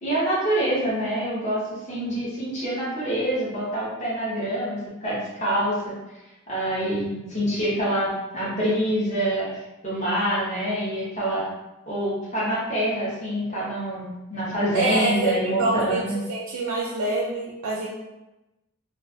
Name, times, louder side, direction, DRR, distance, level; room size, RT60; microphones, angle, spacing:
voice 1, 0.0-6.2 6.5-11.5 11.9-16.2, right 1 dB, 35° left, -7 dB, 0.8 m, -26 dB
voice 2, 14.7-16.0 16.3-17.9, right 2 dB, 80° right, -4 dB, 0.4 m, -26 dB
2.3 x 2.3 x 2.5 m, 0.99 s
head